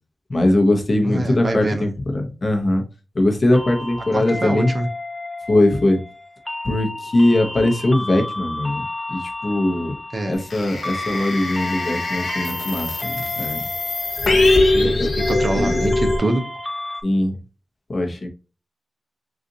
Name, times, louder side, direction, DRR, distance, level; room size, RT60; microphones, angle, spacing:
voice 1, 0.3-2.8 3.1-4.7 5.5-6.0 6.6-10.0 10.3-13.6 14.8-15.1 15.5-15.8 17.0-17.4 17.9-18.3, left 1 dB, 35° left, 2 dB, 0.8 m, -20 dB
voice 2, 1.0-1.9 4.1-4.9 10.1-10.4 14.6-15.0 15.3-16.4, right 2 dB, 35° right, 6 dB, 0.6 m, -24 dB
sound 1, 3.5-17.0, left 2 dB, 10° left, 0.3 m, -32 dB
sound 2, 10.5-16.2, left 2 dB, 60° left, 1.2 m, -22 dB
3.9 x 2.5 x 2.6 m, 0.33 s
wide cardioid pair, 120°, 0 cm